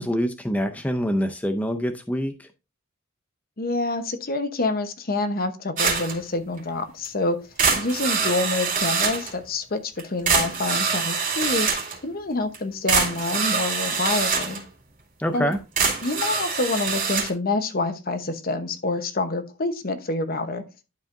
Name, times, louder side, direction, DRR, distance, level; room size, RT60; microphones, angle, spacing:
voice 1, 0.0-2.5 15.2-15.6, equal, 10° left, 6 dB, 0.5 m, -25 dB
voice 2, 3.6-7.4 7.8-11.7 12.0-14.6 15.3-15.5 16.0-20.6, left 2 dB, 45° left, 9 dB, 1.0 m, -27 dB
sound 1, 5.8-6.2 6.6-6.7 7.0-7.1 7.6-9.3 10.0-10.1 10.3-12.0 12.5-12.6 12.9-14.6 15.5-17.3, right 5 dB, 40° right, 2.6 m, -24 dB
11.5 x 4.8 x 2.6 m, 0.29 s
head